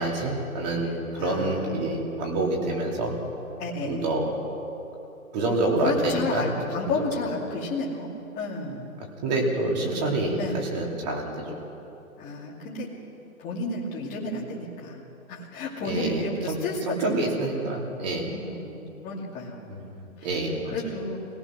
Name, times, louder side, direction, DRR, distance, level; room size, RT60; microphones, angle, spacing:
voice 1, 0.0-3.2 3.8-4.3 5.3-6.5 7.0-7.1 9.2-11.6 15.8-16.6 16.9-18.3 19.7-20.8, right 2 dB, 30° right, -1 dB, 3.3 m, -27 dB
voice 2, 0.8-1.8 3.6-4.0 5.8-8.9 10.4-10.6 12.2-12.9 13.4-17.6 18.3-18.8 19.0-19.6 20.2-20.3 20.7-21.2, left 3 dB, 20° left, -4 dB, 2.6 m, -32 dB
23.0 x 18.0 x 6.2 m, 3.0 s
hypercardioid pair, 150°, 43 cm